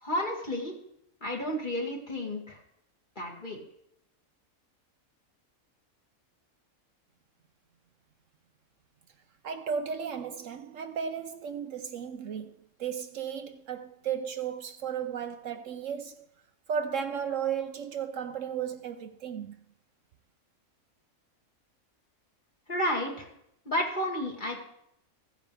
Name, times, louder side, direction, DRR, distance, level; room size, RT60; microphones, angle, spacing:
voice 1, 0.0-0.8 1.2-2.6 3.2-3.6 22.7-23.3 23.6-24.6, left 1 dB, 35° left, 2.7 m, -31 dB
voice 2, 9.4-12.5 12.8-16.3 16.7-19.5, right 7 dB, 65° right, 1.0 m, -34 dB
16.0 x 9.7 x 3.4 m
omnidirectional pair, 1.5 m